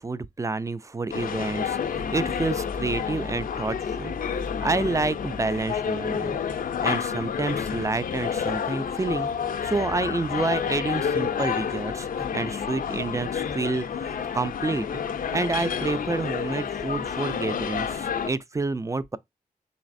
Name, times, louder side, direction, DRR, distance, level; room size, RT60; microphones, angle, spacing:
voice 1, 0.0-4.1 4.6-6.4 6.8-9.3 9.6-15.0 15.3-19.2, right 3 dB, 20° right, 0.3 m, -29 dB
sound 1, 1.1-18.3, left 7 dB, 65° left, 0.4 m, -29 dB
4.0 x 3.2 x 2.5 m
cardioid pair, 55°, 15 cm